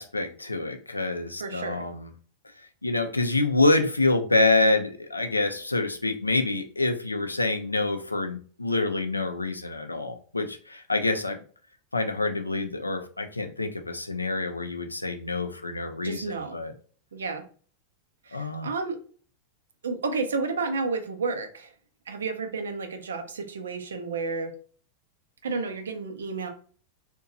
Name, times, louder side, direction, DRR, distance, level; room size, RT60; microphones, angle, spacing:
voice 1, 0.0-2.1 2.8-11.4 11.9-16.7 18.3-18.7, left 2 dB, 80° left, 6 dB, 0.4 m, -26 dB
voice 2, 1.4-1.8 16.0-16.6 17.1-17.4 18.2-19.0 19.8-21.7 22.1-24.5 25.4-26.5, right 4 dB, 65° right, 6 dB, 0.5 m, -31 dB
2.6 x 2.2 x 2.6 m, 0.43 s
figure-of-eight pair, 90°, 0 cm